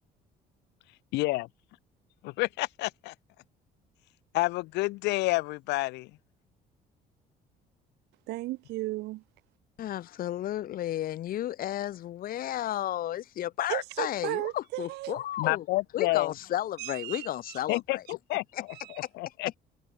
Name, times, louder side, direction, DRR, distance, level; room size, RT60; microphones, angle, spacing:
voice 1, 1.1-1.5 2.2-3.1 4.3-6.1 15.4-16.3 17.7-18.4 19.1-19.6, left 21 dB, 85° left, 0.6 m, -29 dB
voice 2, 8.3-9.2 13.7-15.2 16.8-17.8 18.7-19.0, right 19 dB, 85° right, 1.1 m, -35 dB
voice 3, 9.8-15.6 15.9-18.0 18.5-18.6, left 12 dB, 60° left, 0.9 m, -33 dB
cardioid pair, 110°, 17 cm